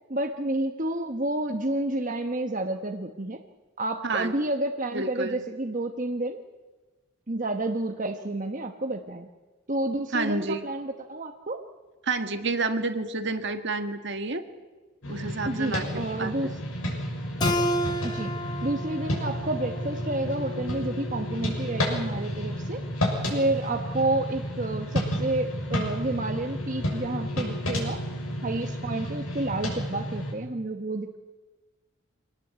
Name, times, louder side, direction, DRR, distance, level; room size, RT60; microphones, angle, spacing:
voice 1, 0.1-3.4 3.8-6.4 7.3-9.3 9.7-11.6 15.4-16.6 18.0-18.3 18.6-22.8 23.3-28.0 28.4-31.2, right 2 dB, 40° right, 4 dB, 1.1 m, -30 dB
voice 2, 4.0-4.4 4.9-5.4 10.1-10.7 12.0-14.4 15.1-16.3, right 3 dB, 55° right, 7 dB, 1.8 m, -29 dB
sound 1, 15.0-30.3, equal, 90° left, 6.7 m, -31 dB
Keyboard (musical), 17.4-20.6, equal, 20° left, 1.0 m, -31 dB
25.0 x 18.5 x 8.0 m, 1.3 s
head